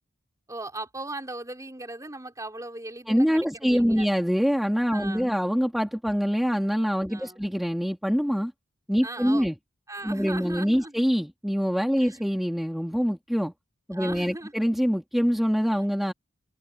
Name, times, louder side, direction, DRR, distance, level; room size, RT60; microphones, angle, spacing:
voice 1, 0.5-4.1 4.9-5.4 7.1-7.5 9.0-9.5 9.9-11.0 12.0-12.2 13.9-14.5 15.8-15.9, right 2 dB, 15° right, 3.8 m, -38 dB
voice 2, 3.1-8.5 8.9-9.6 10.0-13.5 13.9-16.1, equal, ahead, 2.0 m, -25 dB
head